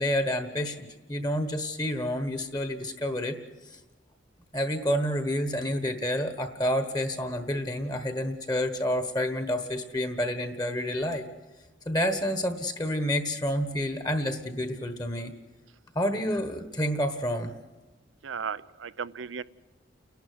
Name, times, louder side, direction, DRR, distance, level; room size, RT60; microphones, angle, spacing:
voice 1, 0.0-3.4 4.5-11.3 11.8-15.3 15.9-17.5, equal, 20° left, 9 dB, 1.3 m, -29 dB
voice 2, 18.2-19.4, right 6 dB, 80° right, 17 dB, 0.6 m, -35 dB
30.0 x 12.0 x 9.5 m, 1.2 s
head